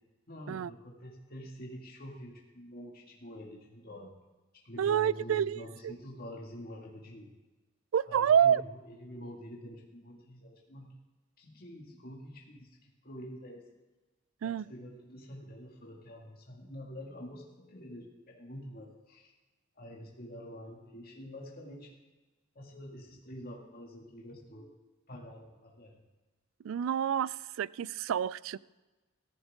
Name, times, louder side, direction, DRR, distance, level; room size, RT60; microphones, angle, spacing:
voice 1, 0.3-4.1 4.5-7.3 8.1-10.9 11.4-13.7 14.4-19.3 19.8-21.9 22.6-24.7 25.1-26.0, equal, 45° left, -2 dB, 2.1 m, -47 dB
voice 2, 4.8-5.9 7.9-8.6 14.4-14.7 26.6-28.6, right 8 dB, 80° right, 21 dB, 0.3 m, -28 dB
14.5 x 14.0 x 3.7 m, 1.2 s
head